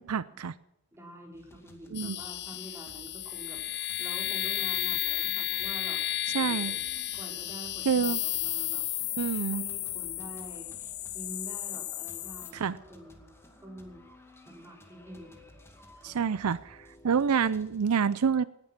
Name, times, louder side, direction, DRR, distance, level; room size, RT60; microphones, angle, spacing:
voice 1, 0.1-0.5 1.9-2.2 6.3-6.7 7.9-8.2 9.2-9.6 12.5-12.8 16.0-16.8 17.0-18.4, right 6 dB, 80° right, 17 dB, 0.5 m, -27 dB
voice 2, 0.9-6.0 6.3-6.7 7.1-8.8 9.5-13.3 13.6-14.0 14.4-15.5 15.9-16.2, right 1 dB, 10° right, 0 dB, 4.6 m, -47 dB
sound 1, 1.3-17.8, left 1 dB, 10° left, 2.3 m, -56 dB
sound 2, 1.9-12.5, left 13 dB, 50° left, 1.0 m, -33 dB
18.5 x 10.5 x 6.0 m, 0.85 s
head